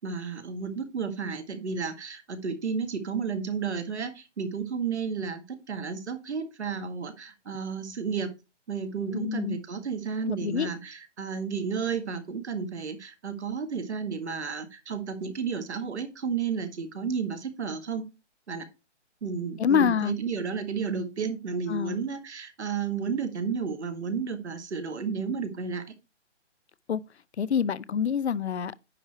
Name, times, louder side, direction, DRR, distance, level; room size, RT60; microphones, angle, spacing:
voice 1, 0.0-8.3 8.7-18.0 18.5-18.7 19.2-25.8, right 6 dB, 65° right, 1.9 m, -32 dB
voice 2, 9.1-9.6 10.3-10.7 19.6-20.2 21.7-22.0 26.9-27.0 27.4-28.9, left 7 dB, 65° left, 0.7 m, -26 dB
9.9 x 4.9 x 4.5 m
hypercardioid pair, 165°, 36 cm